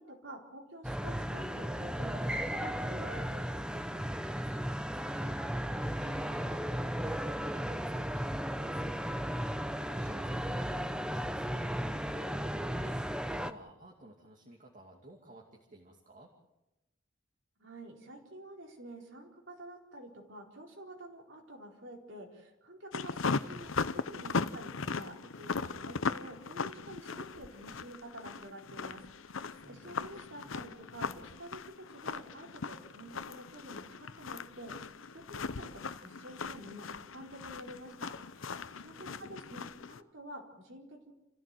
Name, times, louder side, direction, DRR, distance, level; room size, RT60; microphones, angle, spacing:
voice 1, 0.0-3.9 17.6-41.1, right 1 dB, 65° right, 1 dB, 4.4 m, -49 dB
sound 1, 0.8-13.5, equal, 5° right, 0.7 m, -35 dB
voice 2, 4.4-9.4 9.8-16.3 29.5-30.7 38.7-39.4, right 1 dB, 40° right, -2 dB, 2.6 m, -55 dB
sound 2, 22.9-40.0, left 4 dB, 75° left, 0.8 m, -39 dB
28.5 x 15.0 x 7.8 m, 0.96 s
head